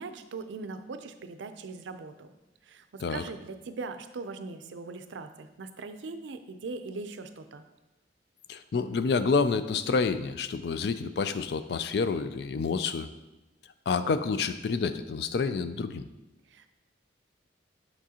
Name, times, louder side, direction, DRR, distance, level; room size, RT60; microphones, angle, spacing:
voice 1, 0.0-2.3 2.6-7.6 16.5-16.7, right 3 dB, 80° right, 9 dB, 0.5 m, -40 dB
voice 2, 8.5-13.1 13.9-16.1, left 4 dB, 60° left, 11 dB, 0.3 m, -28 dB
6.5 x 6.1 x 2.8 m, 1.0 s
head